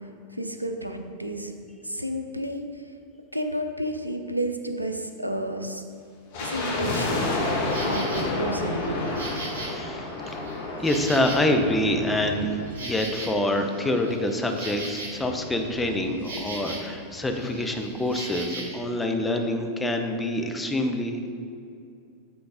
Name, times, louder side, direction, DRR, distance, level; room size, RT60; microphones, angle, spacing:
voice 1, 0.0-1.5 1.8-2.9 3.3-5.8 6.4-9.2, right 1 dB, 85° right, 6 dB, 0.5 m, -31 dB
sound 1, 6.3-13.6 13.9-14.0 14.6-16.5 16.7-16.8 17.0-17.3 17.8-17.9, left 2 dB, 50° left, 1.5 m, -31 dB
Insect, 7.4-8.3 8.8-11.8 12.1-17.0 17.3-18.8, right 2 dB, 60° right, 1.4 m, -39 dB
voice 2, 9.7-10.1 10.8-12.6 12.8-21.3, left 1 dB, 10° left, 4 dB, 0.7 m, -26 dB
8.0 x 3.9 x 4.9 m, 2.5 s
figure-of-eight pair, 90°, 0 cm